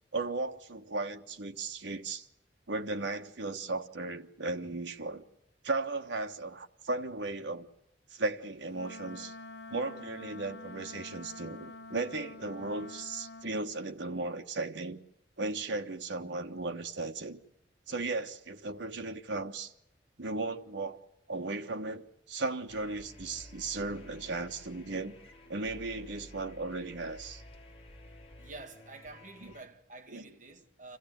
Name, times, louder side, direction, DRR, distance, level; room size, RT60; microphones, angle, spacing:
voice 1, 0.1-2.3 2.7-5.2 5.6-7.7 8.1-9.3 9.7-15.0 15.4-17.4 17.9-19.7 20.2-21.0 21.3-25.1 25.5-27.4 29.4-29.5 30.1-30.2, right 3 dB, 80° right, 1.4 m, -36 dB
Wind instrument woodwind instrument, 8.7-13.5, left 2 dB, 65° left, 0.8 m, -47 dB
sound 1, 22.7-29.6, left 1 dB, 35° left, 3.3 m, -52 dB
voice 2, 28.4-31.0, right 3 dB, 45° right, 1.9 m, -49 dB
27.0 x 15.0 x 9.3 m
head